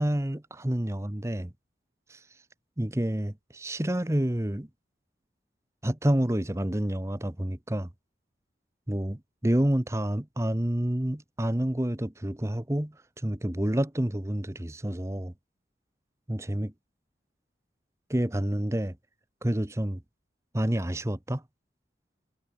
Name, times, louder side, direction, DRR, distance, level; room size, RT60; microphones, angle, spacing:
voice 1, 0.0-1.5 2.1-2.2 2.8-4.7 5.8-7.9 8.9-15.3 16.3-16.7 18.1-19.0 19.4-20.0 20.5-21.4, right 1 dB, 15° right, 0.9 m, -28 dB
head